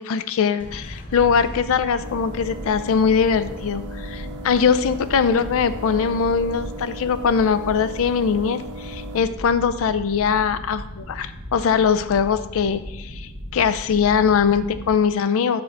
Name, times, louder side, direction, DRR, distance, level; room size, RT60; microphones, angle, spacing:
voice 1, 0.0-15.6, left 6 dB, 65° left, 13 dB, 0.4 m, -21 dB
sound 1, 0.6-15.0, equal, 35° left, 0.9 m, -37 dB
sound 2, 2.0-9.2, right 1 dB, 85° right, 0.6 m, -38 dB
5.7 x 5.2 x 3.5 m, 0.96 s
head